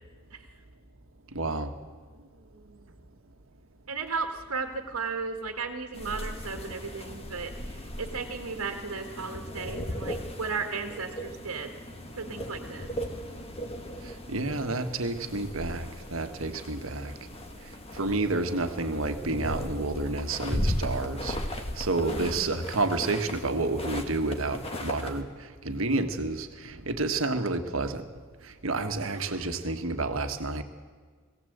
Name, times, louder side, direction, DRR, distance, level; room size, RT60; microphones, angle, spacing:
voice 1, 1.3-1.7 14.3-17.1 17.9-21.4 21.8-25.2 25.6-28.0 28.6-30.6, right 2 dB, 65° right, 7 dB, 1.5 m, -29 dB
voice 2, 3.9-11.7 12.2-12.9 22.0-22.5 29.0-29.5, right 4 dB, 85° right, 4 dB, 1.6 m, -35 dB
sound 1, 5.9-25.2, equal, 30° left, 1.8 m, -37 dB
21.0 x 16.5 x 8.0 m, 1.5 s
head